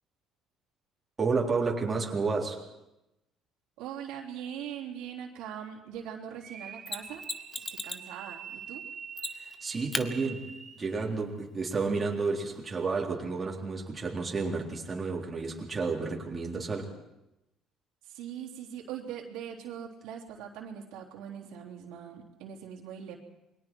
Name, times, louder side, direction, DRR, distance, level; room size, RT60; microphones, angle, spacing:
voice 1, 1.2-2.6 9.4-10.5 10.8-16.9, right 4 dB, 20° right, -2 dB, 3.7 m, -31 dB
voice 2, 3.8-7.2 7.5-8.8 18.0-23.2, right 9 dB, 90° right, 0 dB, 3.4 m, -41 dB
sound 1, 6.3-11.1, right 7 dB, 45° right, 3.7 m, -45 dB
Mechanisms, 6.9-8.1 9.2-9.6 9.9-10.1 12.8-12.9, left 2 dB, 15° left, 1.2 m, -35 dB
28.5 x 22.5 x 4.6 m, 0.92 s
cardioid pair, 135°, 0 cm